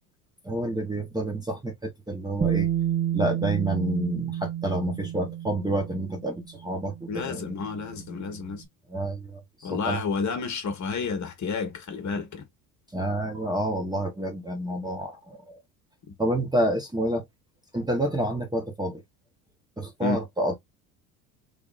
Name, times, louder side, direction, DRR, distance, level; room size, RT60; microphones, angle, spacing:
voice 1, 0.4-2.7 3.1-7.6 8.9-10.0 12.9-15.6 16.2-17.2 17.7-19.0 19.8-20.5, right 1 dB, 10° right, 1.0 m, -29 dB
Bass guitar, 2.4-8.5, right 10 dB, 25° right, 1.4 m, -31 dB
voice 2, 7.1-8.6 9.6-12.4 20.0-20.2, left 4 dB, 35° left, 1.4 m, -30 dB
3.5 x 3.4 x 2.4 m
hypercardioid pair, 75°, 49 cm